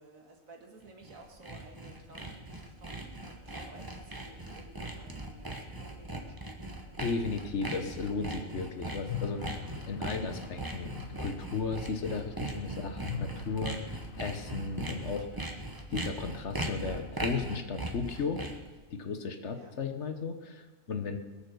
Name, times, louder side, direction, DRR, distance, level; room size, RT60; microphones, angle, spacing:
voice 1, 0.0-7.0 9.7-9.9 19.5-19.7, right 2 dB, 90° right, 3 dB, 2.2 m, -55 dB
Sawing, 0.9-18.7, right 2 dB, 15° right, 1.3 m, -39 dB
voice 2, 7.0-9.6 9.9-10.9 11.2-15.3 15.9-18.4 18.9-21.2, left 4 dB, 60° left, 7 dB, 1.3 m, -35 dB
sound 1, 9.0-15.3, left 9 dB, 90° left, 1.0 m, -44 dB
21.5 x 7.3 x 6.7 m, 1.3 s
omnidirectional pair, 1.4 m